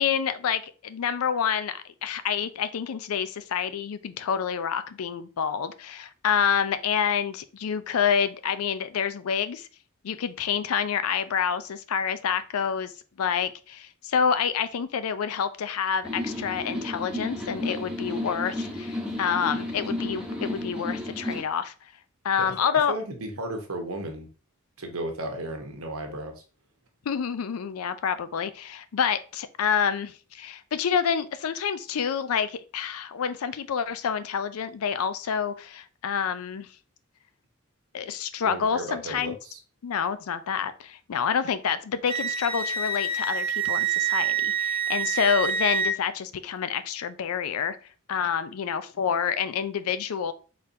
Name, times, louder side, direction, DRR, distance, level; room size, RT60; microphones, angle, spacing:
voice 1, 0.0-9.7 10.0-12.9 13.2-21.9 22.2-23.0 27.1-36.7 37.9-39.4 39.8-47.8 48.1-50.3, left 7 dB, 85° left, 12 dB, 0.4 m, -28 dB
sound 1, 16.0-21.4, left 1 dB, 5° right, 0.9 m, -32 dB
voice 2, 22.9-24.3 24.8-26.4 38.4-39.6, right 1 dB, 85° right, 3 dB, 1.0 m, -34 dB
Wind instrument woodwind instrument, 42.1-46.0, right 5 dB, 25° right, 0.5 m, -27 dB
4.2 x 3.8 x 2.6 m, 0.36 s
head